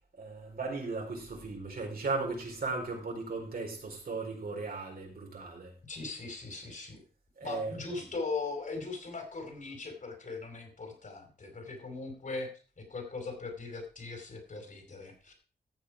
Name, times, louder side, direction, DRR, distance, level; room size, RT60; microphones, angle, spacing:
voice 1, 0.2-5.7 7.4-7.8, right 3 dB, 60° right, 0 dB, 4.6 m, -36 dB
voice 2, 5.9-7.0 7.4-15.3, left 3 dB, 45° left, 3 dB, 4.9 m, -39 dB
14.0 x 7.3 x 4.9 m, 0.39 s
wide cardioid pair, 95°, 18 cm